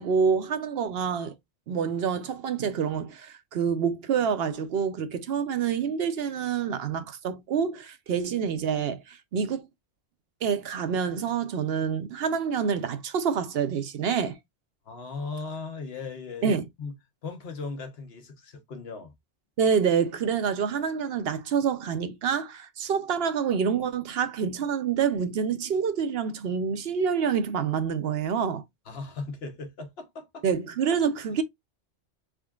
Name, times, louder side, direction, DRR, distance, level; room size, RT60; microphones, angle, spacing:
voice 1, 0.0-1.3 1.7-9.7 10.4-14.4 16.4-16.7 19.6-28.6 30.4-31.4, right 6 dB, 70° right, 0.8 m, -27 dB
voice 2, 14.9-16.5 16.8-16.9 17.2-19.1 28.9-30.4, left 4 dB, 65° left, 1.1 m, -37 dB
3.7 x 3.4 x 2.3 m
omnidirectional pair, 1.1 m